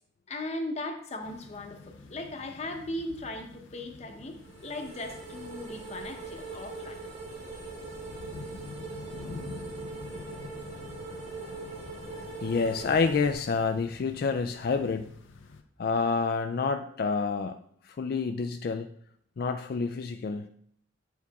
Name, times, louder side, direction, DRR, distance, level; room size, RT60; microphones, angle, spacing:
voice 1, 0.3-7.0 11.4-11.5, left 1 dB, 35° left, 4 dB, 0.8 m, -38 dB
sound 1, 1.2-15.6, left 3 dB, 90° left, 0.6 m, -48 dB
sound 2, 4.3-13.3, right 3 dB, 35° right, 1.2 m, -41 dB
voice 2, 12.4-15.1 15.8-17.6 17.8-18.9 19.4-20.5, left 4 dB, 50° left, 6 dB, 0.3 m, -28 dB
8.3 x 4.7 x 3.5 m, 0.65 s
head